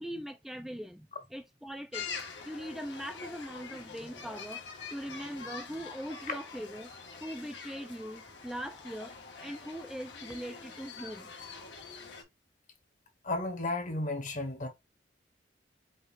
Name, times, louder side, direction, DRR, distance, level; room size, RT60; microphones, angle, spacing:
voice 1, 0.0-2.1 2.4-4.7 4.9-6.9 7.2-9.1 9.4-11.3, equal, ahead, 0.4 m, -41 dB
sound 1, 1.9-12.2, left 5 dB, 70° left, 1.4 m, -45 dB
voice 2, 13.2-14.7, left 2 dB, 45° left, 1.1 m, -33 dB
5.0 x 2.4 x 4.1 m
head